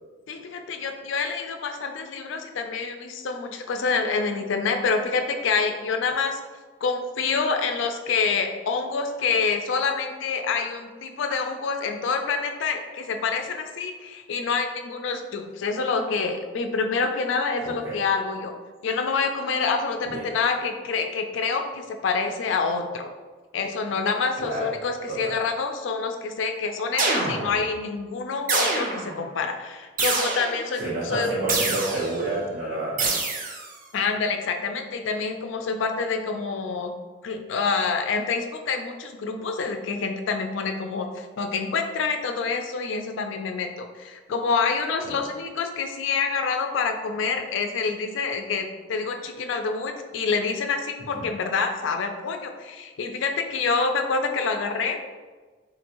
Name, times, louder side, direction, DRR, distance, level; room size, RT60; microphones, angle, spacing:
voice 1, 0.3-6.4 6.8-18.5 18.8-23.1 23.5-31.3 33.9-36.9 37.2-55.0, left 4 dB, 70° left, 5 dB, 0.4 m, -27 dB
voice 2, 17.6-18.0 20.0-20.3 24.4-24.7 25.1-25.4 30.8-33.1 45.0-45.1 51.1-51.3, right 2 dB, 85° right, -10 dB, 0.9 m, -29 dB
sound 1, 27.0-27.7 28.5-29.2 30.0-30.7 31.5-32.2 33.0-33.7, right 3 dB, 45° right, 0.5 m, -26 dB
3.8 x 2.6 x 2.9 m, 1.3 s
head